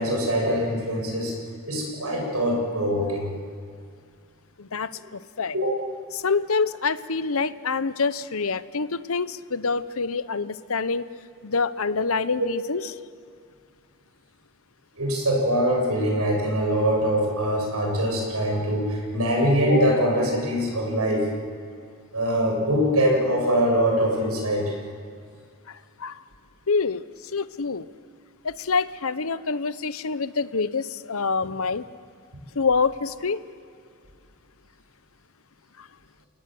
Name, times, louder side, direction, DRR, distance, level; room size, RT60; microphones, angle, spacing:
voice 1, 0.0-1.3 1.7-3.3 5.5-5.8 14.9-21.3 22.1-24.7, equal, 85° right, 0 dB, 7.5 m, -23 dB
voice 2, 4.6-5.5 6.1-11.1 11.4-12.9 25.7-26.2 26.7-27.0 27.3-27.9 28.4-31.9 32.5-33.4 35.8-35.9, left 4 dB, 70° left, 14 dB, 0.8 m, -26 dB
29.0 x 19.0 x 7.8 m, 2.3 s
head